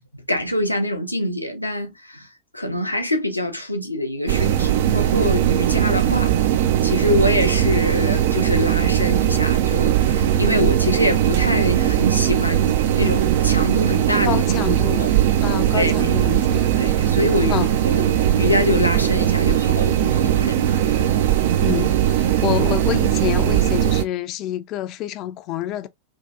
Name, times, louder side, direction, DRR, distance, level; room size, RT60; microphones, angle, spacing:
voice 1, 0.3-2.3 2.5-6.3 6.8-14.4 15.0-15.1 15.7-16.1 16.8-17.6 17.9-21.0, left 1 dB, 85° left, 0.5 m, -24 dB
sound 1, 4.3-24.0, right 11 dB, 55° right, 0.3 m, -19 dB
voice 2, 14.2-15.1 15.4-16.8 17.5-17.7 21.6-25.9, left 13 dB, 40° left, 0.3 m, -27 dB
2.7 x 2.2 x 2.3 m
figure-of-eight pair, 90°, 0 cm